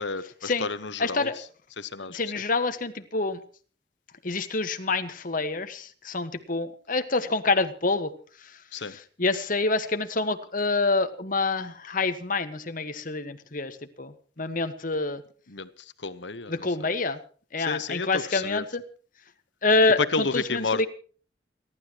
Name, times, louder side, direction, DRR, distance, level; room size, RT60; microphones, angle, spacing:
voice 1, 0.0-1.3 1.8-2.2 8.7-8.9 15.5-16.9 17.6-18.6 20.1-20.9, left 4 dB, 75° left, 13 dB, 1.3 m, -32 dB
voice 2, 1.0-1.4 2.1-3.4 4.2-8.1 8.4-15.2 16.5-17.2 17.5-18.8 19.6-20.9, left 3 dB, 50° left, 8 dB, 1.6 m, -27 dB
29.5 x 12.0 x 3.1 m, 0.42 s
head